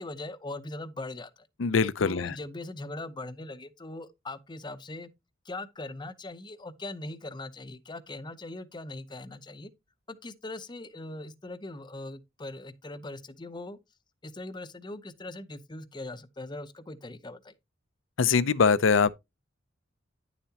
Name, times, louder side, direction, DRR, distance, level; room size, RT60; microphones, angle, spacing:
voice 1, 0.0-1.5 2.0-5.1 5.4-9.7 10.1-13.8 14.2-17.5, left 2 dB, 25° left, 0.7 m, -40 dB
voice 2, 1.6-2.3 18.2-19.1, left 5 dB, 80° left, 0.6 m, -23 dB
10.0 x 7.1 x 2.8 m
head